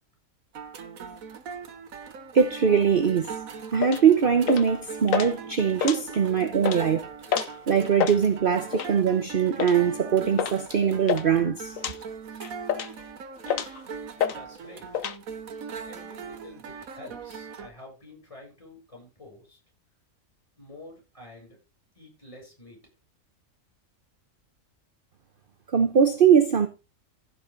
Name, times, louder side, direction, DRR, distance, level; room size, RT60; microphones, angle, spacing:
sound 1, 0.5-17.7, right 6 dB, 80° right, 1.5 m, -40 dB
voice 1, 2.3-3.4 3.7-7.1 7.7-12.0 25.7-26.7, right 7 dB, 45° right, 1.0 m, -22 dB
sound 2, 3.8-4.0 4.5-4.8 5.1-5.3 5.7-6.3 6.6-6.8 7.3-7.5 7.8-8.2 8.7-9.0 9.6-9.8 10.4-10.6 10.8-11.3 11.8-12.0 12.4-13.0 13.5-13.8 14.2-14.4 14.6-15.2, left 9 dB, 75° left, 1.3 m, -28 dB
voice 2, 14.3-15.2 15.9-19.6 20.6-21.6 21.9-22.8, left 2 dB, 25° left, 7.9 m, -48 dB
15.5 x 5.8 x 3.9 m
omnidirectional pair, 1.4 m